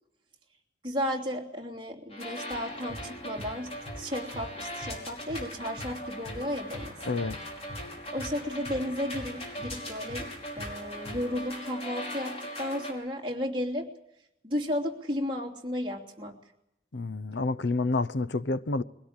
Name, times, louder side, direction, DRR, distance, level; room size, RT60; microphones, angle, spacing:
voice 1, 0.8-3.7 4.0-7.0 8.1-10.3 10.5-13.9 14.4-16.3, left 1 dB, 30° right, 3.1 m, -33 dB
sound 1, 2.1-12.9, left 1 dB, 35° left, 5.0 m, -40 dB
sound 2, 2.5-11.5, equal, 10° left, 5.4 m, -46 dB
voice 2, 7.0-7.4 16.9-18.8, left 3 dB, 80° left, 0.8 m, -29 dB
22.5 x 17.0 x 8.8 m
head